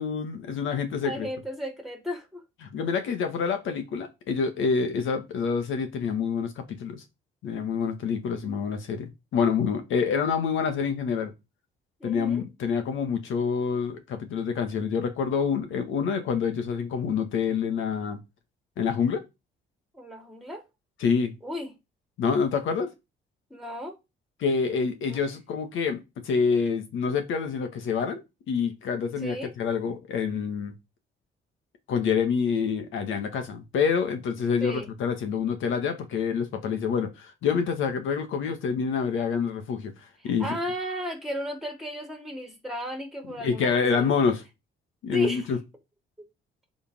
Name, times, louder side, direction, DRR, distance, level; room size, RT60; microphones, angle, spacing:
voice 1, 0.0-1.3 2.6-7.0 7.4-11.3 12.0-18.2 18.8-19.2 21.0-21.3 22.2-22.9 24.4-30.7 31.9-39.9 40.2-40.5 43.4-44.4 45.0-45.6, left 6 dB, 80° left, 1.8 m, -27 dB
voice 2, 1.0-2.4 12.0-12.4 19.9-20.6 21.4-21.7 23.5-24.0 25.0-25.2 29.2-29.5 34.6-34.9 40.2-44.1 45.1-45.5, equal, ahead, 3.8 m, -34 dB
9.9 x 5.2 x 3.7 m
cardioid pair, 90°, 20 cm